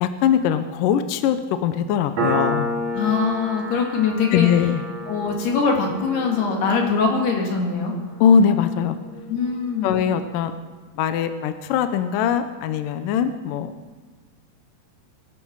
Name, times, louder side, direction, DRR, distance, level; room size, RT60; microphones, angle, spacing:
voice 1, 0.0-2.7 4.3-4.8 8.2-9.0 9.8-10.5 11.0-13.7, left 8 dB, 75° left, 9 dB, 2.2 m, -21 dB
Piano, 2.2-9.3, equal, 45° right, 3.8 m, -31 dB
voice 2, 2.9-4.5 5.1-7.9 9.3-10.0, left 5 dB, 90° left, 0 dB, 4.5 m, -22 dB
22.5 x 11.5 x 4.8 m, 1.4 s
omnidirectional pair, 4.5 m